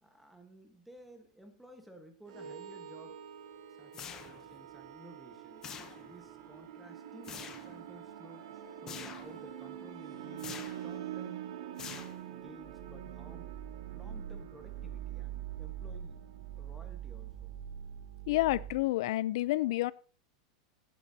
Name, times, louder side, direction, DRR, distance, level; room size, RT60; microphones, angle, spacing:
voice 1, 0.0-3.2 3.7-5.7 6.0-11.5 12.3-13.5 13.9-16.2 16.6-17.5, right 1 dB, ahead, 4 dB, 1.2 m, -55 dB
sound 1, 2.3-18.8, right 10 dB, 70° right, 1.8 m, -44 dB
sound 2, 3.9-4.6 5.6-6.3 7.2-7.7 8.9-9.4 10.4-10.9 11.8-12.5, left 7 dB, 15° left, 0.7 m, -46 dB
voice 2, 18.3-19.9, left 17 dB, 55° left, 20 dB, 0.4 m, -29 dB
17.0 x 9.1 x 2.7 m, 0.39 s
supercardioid pair, 180°, 3 cm